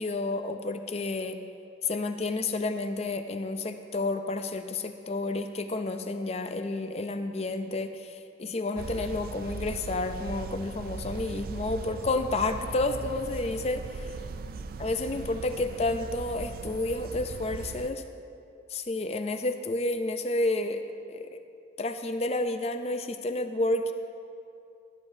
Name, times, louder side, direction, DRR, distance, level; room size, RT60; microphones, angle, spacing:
voice 1, 0.0-1.4 1.8-14.0 14.8-18.0 18.7-20.8 21.1-21.4 21.8-23.9, left 2 dB, 35° left, 8 dB, 0.5 m, -30 dB
sound 1, 8.8-17.9, right 4 dB, 50° right, 0.4 m, -39 dB
16.0 x 9.7 x 2.7 m, 2.4 s
head